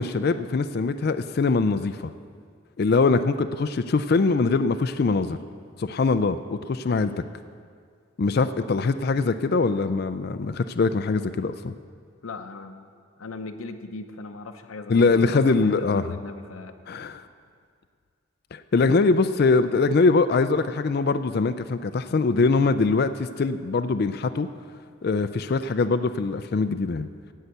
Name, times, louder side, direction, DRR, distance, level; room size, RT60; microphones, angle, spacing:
voice 1, 0.0-2.1 2.8-5.4 5.8-7.1 8.2-11.7 14.9-16.0 16.9-17.2 18.5-24.5 25.0-27.1, left 4 dB, 50° left, 10 dB, 0.4 m, -22 dB
voice 2, 12.2-12.9 13.2-16.8, left 3 dB, 85° left, 6 dB, 0.7 m, -38 dB
16.5 x 5.7 x 7.8 m, 2.1 s
head